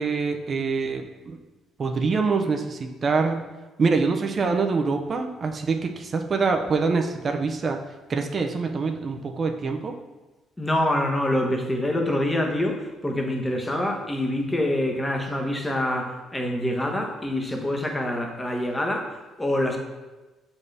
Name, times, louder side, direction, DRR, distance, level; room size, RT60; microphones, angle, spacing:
voice 1, 0.0-1.4 1.8-3.4 3.8-7.8 8.1-10.0, right 4 dB, 35° right, 5 dB, 0.5 m, -25 dB
voice 2, 10.6-19.8, left 1 dB, 15° left, 2 dB, 0.9 m, -26 dB
7.1 x 4.3 x 3.3 m, 1.2 s
cardioid pair, 125°, 0 cm